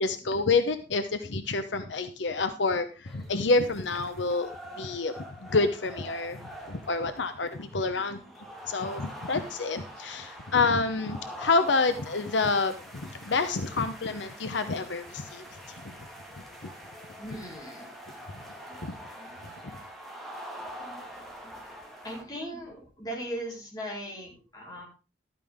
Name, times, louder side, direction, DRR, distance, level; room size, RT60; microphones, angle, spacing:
voice 1, 0.0-4.5 4.8-8.2 8.7-15.9 16.6-16.7 18.8-18.9, left 3 dB, 80° left, 9 dB, 0.9 m, -28 dB
sound 1, 3.1-22.2, equal, ahead, 2.0 m, -45 dB
voice 2, 17.2-18.2 18.7-18.8 19.2-19.3 20.8-21.0 21.4-21.5 22.0-24.8, equal, 20° left, -2 dB, 4.1 m, -39 dB
12.5 x 9.1 x 3.6 m, 0.33 s
head